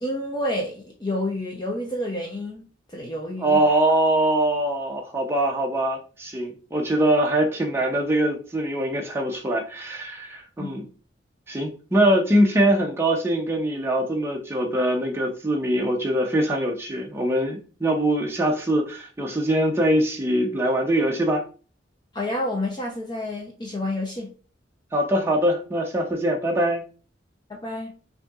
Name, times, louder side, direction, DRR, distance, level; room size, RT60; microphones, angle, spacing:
voice 1, 0.0-2.6 2.9-3.6 10.6-10.7 22.1-24.3 27.5-27.9, left 1 dB, 25° left, 0.6 m, -29 dB
voice 2, 3.4-10.8 11.5-21.4 24.9-26.8, right 1 dB, 15° right, 0.6 m, -23 dB
5.5 x 2.7 x 2.4 m
head